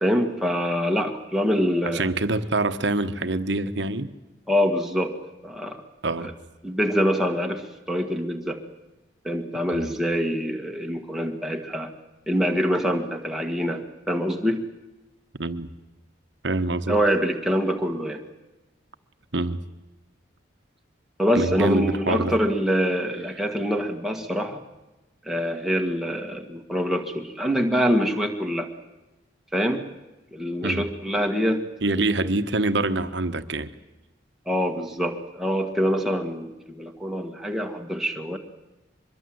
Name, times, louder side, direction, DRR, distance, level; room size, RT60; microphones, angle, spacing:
voice 1, 0.0-2.1 4.5-5.2 5.4-5.8 6.2-6.3 6.6-8.6 9.2-11.9 12.3-14.7 16.9-18.2 21.2-24.6 25.3-28.7 29.5-29.9 30.3-31.7 34.5-38.4, equal, ahead, 2 dB, 1.8 m, -25 dB
voice 2, 1.9-4.1 6.0-6.3 9.7-9.9 15.3-15.7 16.4-16.9 19.3-19.6 21.3-22.4 30.6-30.9 31.8-33.7, right 2 dB, 70° right, 10 dB, 1.2 m, -25 dB
24.5 x 22.0 x 7.9 m, 1.1 s
head